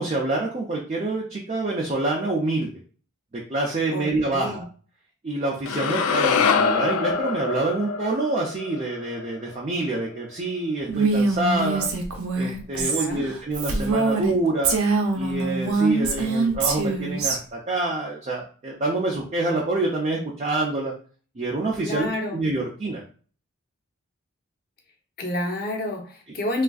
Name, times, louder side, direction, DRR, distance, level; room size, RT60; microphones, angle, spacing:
voice 1, 0.0-2.7 3.5-4.6 5.2-11.9 12.3-14.8 15.1-20.9 21.4-23.0, right 2 dB, 30° right, -2 dB, 0.5 m, -26 dB
voice 2, 3.9-4.7 12.7-13.3 21.8-22.4 25.2-26.6, left 1 dB, 45° left, 1 dB, 0.7 m, -29 dB
sound 1, 5.7-9.9, left 6 dB, 75° left, 0.4 m, -25 dB
Female speech woman speaking, 10.9-14.3 14.6-17.4, right 3 dB, 80° right, 0.6 m, -24 dB
3.4 x 2.4 x 2.3 m, 0.40 s
head